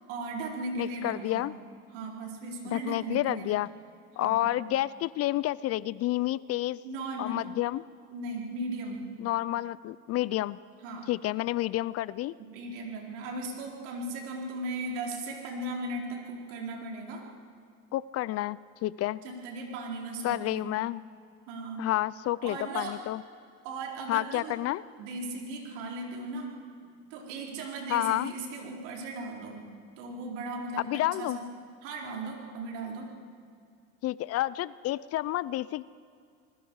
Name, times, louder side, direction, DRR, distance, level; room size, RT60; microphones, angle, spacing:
voice 1, 0.1-1.4 1.9-3.6 4.2-4.5 6.8-7.5 8.1-9.0 10.8-11.1 12.5-17.2 19.2-20.7 21.5-21.8 22.4-23.0 23.6-24.5 25.0-26.5 26.8-29.7 30.0-31.4 31.8-33.1, right 2 dB, 75° right, -1 dB, 4.6 m, -37 dB
voice 2, 0.8-1.5 2.7-3.7 4.2-6.8 7.2-7.8 9.2-10.6 11.1-12.3 17.9-19.2 20.2-21.0 21.8-23.2 24.1-24.8 27.9-28.3 30.8-31.4 34.0-35.8, left 15 dB, 40° left, 19 dB, 0.5 m, -30 dB
27.5 x 20.5 x 4.8 m, 2.2 s
supercardioid pair, 100°, 37 cm